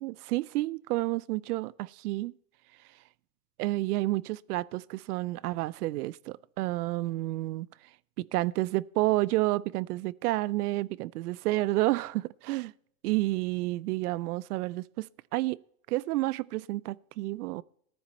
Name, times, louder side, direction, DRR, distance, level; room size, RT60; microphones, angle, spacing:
voice 1, 0.0-2.3 3.6-7.7 8.2-12.7 13.0-15.1 15.3-15.6 15.9-17.6, right 18 dB, 70° right, 0.5 m, -30 dB
14.5 x 9.3 x 4.3 m
supercardioid pair, 145°, 49 cm